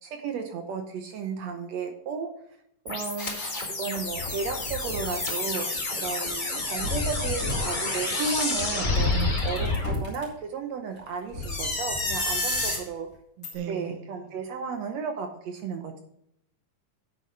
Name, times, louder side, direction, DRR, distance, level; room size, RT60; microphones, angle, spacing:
voice 1, 0.0-2.3 2.9-9.1 9.4-13.1 13.7-16.0, right 5 dB, 65° right, 5 dB, 1.9 m, -34 dB
sound 1, 2.9-9.9, left 2 dB, 65° left, 0.4 m, -31 dB
sound 2, 3.2-3.6 4.1-5.7 6.5-8.0 8.6-10.2 11.3-12.8 13.4-13.5, left 2 dB, 25° left, 3.1 m, -29 dB
voice 2, 9.1-9.6 13.4-14.3, right 8 dB, 90° right, 10 dB, 2.6 m, -37 dB
9.6 x 8.9 x 3.3 m, 0.75 s
omnidirectional pair, 3.8 m